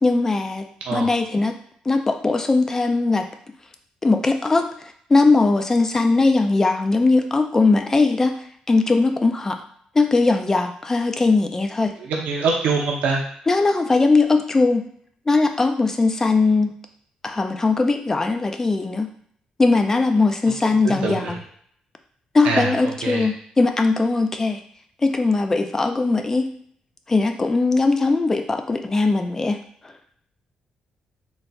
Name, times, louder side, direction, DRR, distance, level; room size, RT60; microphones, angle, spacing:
voice 1, 0.0-0.7 0.9-1.5 1.9-3.3 4.0-4.7 5.1-8.3 8.7-9.6 10.0-11.9 13.5-14.8 15.3-16.7 17.2-19.1 19.6-21.4 22.3-24.6 25.0-26.5 27.1-29.6, left 3 dB, 20° left, 6 dB, 0.4 m, -19 dB
voice 2, 12.0-13.2 20.8-21.4 22.4-23.3, right 4 dB, 85° right, -1 dB, 0.7 m, -24 dB
3.9 x 2.4 x 2.2 m, 0.62 s
cardioid pair, 110°, 2 cm